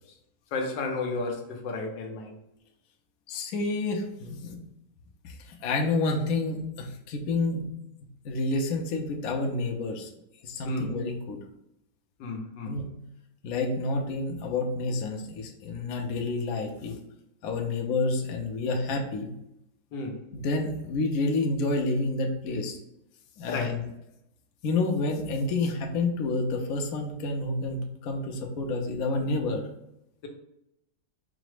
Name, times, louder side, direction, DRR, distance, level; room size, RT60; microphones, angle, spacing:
voice 1, 0.5-2.4 10.6-10.9 12.2-12.8 19.9-20.2 23.5-23.8, left 3 dB, 80° left, 2 dB, 1.4 m, -32 dB
voice 2, 3.3-4.6 5.2-7.6 8.2-10.1 10.4-11.4 12.7-12.8 13.4-17.0 17.4-19.3 20.3-22.8 23.4-23.8 24.6-29.6, left 2 dB, 65° left, 2 dB, 1.0 m, -29 dB
4.9 x 2.1 x 4.8 m, 0.84 s
omnidirectional pair, 1.9 m